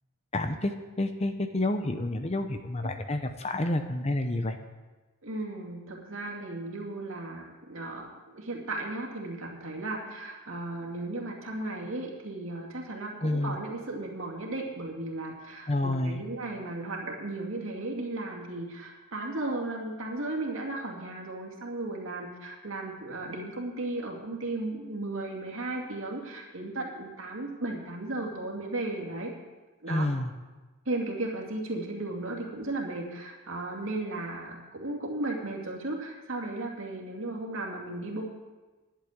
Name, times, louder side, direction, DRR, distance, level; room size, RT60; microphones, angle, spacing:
voice 1, 0.3-4.6 13.2-13.6 15.7-16.2 29.9-30.3, left 1 dB, 30° left, 8 dB, 0.7 m, -29 dB
voice 2, 5.2-29.3 29.8-30.1 30.9-38.2, right 2 dB, 65° right, -1 dB, 2.5 m, -35 dB
11.0 x 8.6 x 7.9 m, 1.2 s
head